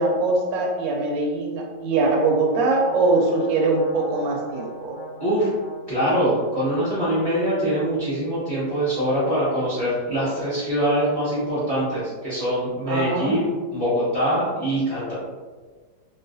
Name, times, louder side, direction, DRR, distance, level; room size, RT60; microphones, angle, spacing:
voice 1, 0.0-5.0 12.9-13.4, right 3 dB, 75° right, 0 dB, 1.2 m, -22 dB
Brass instrument, 2.2-7.3, right 1 dB, 70° left, 1.2 m, -39 dB
voice 2, 5.2-5.5 5.9-15.1, equal, 15° left, -12 dB, 0.9 m, -23 dB
3.1 x 2.6 x 2.5 m, 1.4 s
omnidirectional pair, 2.2 m